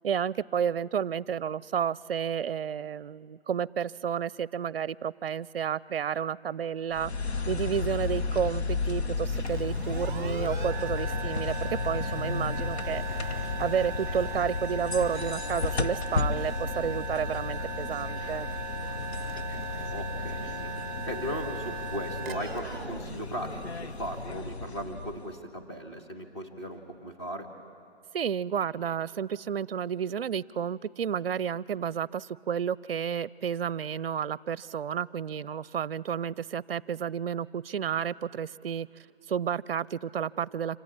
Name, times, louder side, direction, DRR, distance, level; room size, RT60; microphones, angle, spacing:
voice 1, 0.0-7.1 7.5-13.0 13.6-18.5 28.1-38.9 39.3-40.8, right 8 dB, 65° right, 22 dB, 0.5 m, -31 dB
sound 1, 6.9-25.4, left 4 dB, 85° left, 1.3 m, -33 dB
sound 2, 9.4-24.0, right 3 dB, 15° right, 1.3 m, -38 dB
voice 2, 19.9-20.7 21.1-27.5, equal, 25° left, 3 dB, 2.1 m, -37 dB
26.0 x 15.5 x 8.8 m, 2.3 s
hypercardioid pair, 175°, 32 cm